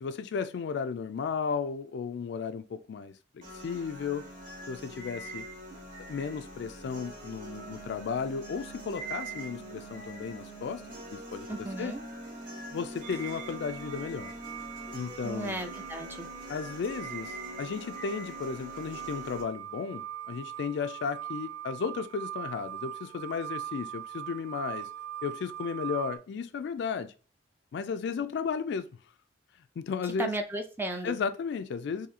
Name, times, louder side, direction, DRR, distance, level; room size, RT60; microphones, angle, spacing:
voice 1, 0.0-4.3 4.7-5.4 6.1-10.8 11.1-12.0 12.7-14.3 14.9-15.6 16.5-24.9 25.2-27.1 27.7-28.9 29.8-30.3 31.0-32.1, left 6 dB, 65° left, 0.3 m, -34 dB
sound 1, 3.4-19.4, right 1 dB, 45° right, 1.2 m, -43 dB
voice 2, 11.5-12.0 15.2-16.3 30.0-31.2, right 1 dB, 10° right, 0.5 m, -35 dB
sound 2, 13.0-26.2, right 11 dB, 80° right, 0.4 m, -42 dB
4.0 x 2.7 x 2.7 m
head